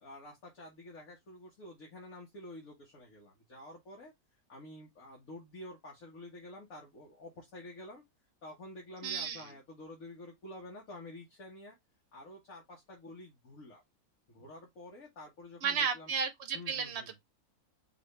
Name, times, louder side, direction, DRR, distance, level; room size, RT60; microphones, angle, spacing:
voice 1, 0.0-4.1 4.5-8.0 8.4-11.8 12.1-13.8 14.3-16.1 16.5-17.2, left 1 dB, 65° left, 1.8 m, -49 dB
voice 2, 9.0-9.5 15.6-17.2, right 6 dB, 50° right, 1.1 m, -33 dB
4.9 x 2.6 x 3.1 m
omnidirectional pair, 1.5 m